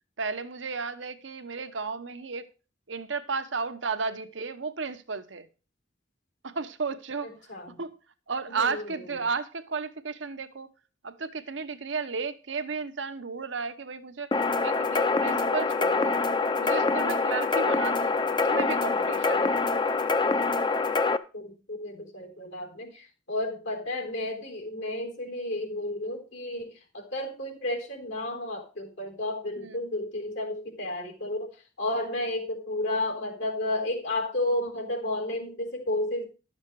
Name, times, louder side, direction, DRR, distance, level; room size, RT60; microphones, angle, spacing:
voice 1, 0.2-2.5 2.9-5.5 6.4-7.5 7.8-8.0 8.3-10.7 11.0-14.3 14.6-16.2 16.6-19.6 29.6-29.8, right 4 dB, 85° right, 1.0 m, -33 dB
voice 2, 7.2-7.8 8.5-9.0 21.3-36.3, left 1 dB, 85° left, 3.7 m, -32 dB
sound 1, 14.3-21.2, left 3 dB, 25° left, 0.5 m, -25 dB
12.0 x 7.3 x 4.7 m
head